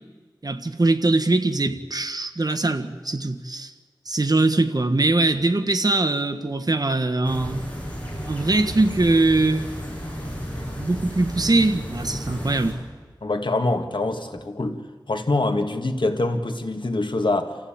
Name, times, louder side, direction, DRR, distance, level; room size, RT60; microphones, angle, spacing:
voice 1, 0.4-3.7 4.1-7.6 8.3-9.6 10.8-12.8, right 2 dB, 50° right, 6 dB, 1.5 m, -22 dB
sound 1, 7.2-12.7, equal, 20° left, 7.7 m, -33 dB
voice 2, 13.2-14.8 15.1-17.6, left 2 dB, 75° left, 6 dB, 1.8 m, -24 dB
27.0 x 15.0 x 8.9 m, 1.5 s
wide cardioid pair, 55°, 8 cm